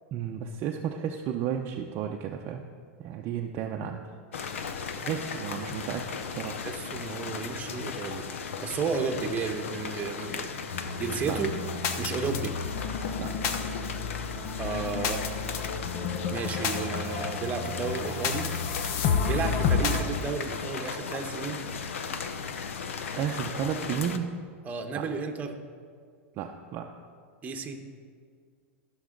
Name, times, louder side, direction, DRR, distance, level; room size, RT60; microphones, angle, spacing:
voice 1, 0.1-2.6 3.0-4.1 5.0-6.6 11.2-11.4 13.1-13.3 23.1-24.4 24.9-25.1 26.4-26.9, right 8 dB, 40° right, 2 dB, 0.6 m, -33 dB
sound 1, 4.3-24.2, left 6 dB, 85° left, 0.8 m, -37 dB
voice 2, 6.6-8.3 8.6-11.5 12.0-12.6 14.6-15.3 16.3-18.5 19.2-21.6 24.6-25.6 27.4-27.8, right 5 dB, 20° right, 4 dB, 1.0 m, -33 dB
sound 2, 10.7-20.0, left 5 dB, 55° left, 0.9 m, -31 dB
15.0 x 6.2 x 3.8 m, 2.1 s
hypercardioid pair, 125°, 7 cm